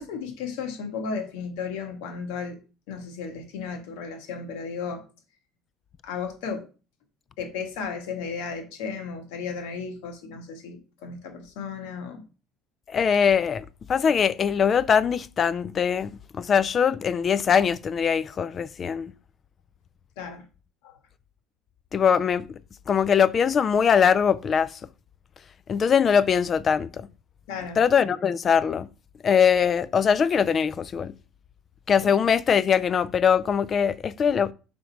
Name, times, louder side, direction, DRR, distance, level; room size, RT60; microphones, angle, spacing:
voice 1, 0.0-2.6 2.9-5.0 6.0-6.6 7.4-12.2 20.2-20.4 20.8-20.9 27.5-27.8, left 5 dB, 85° left, 1.5 m, -34 dB
voice 2, 12.9-13.6 13.9-19.1 21.9-22.5 22.9-24.7 25.7-27.1 27.8-28.9 29.2-31.1 31.9-34.5, left 7 dB, 35° left, 0.3 m, -22 dB
5.1 x 5.0 x 4.6 m
cardioid pair, 120°, 0 cm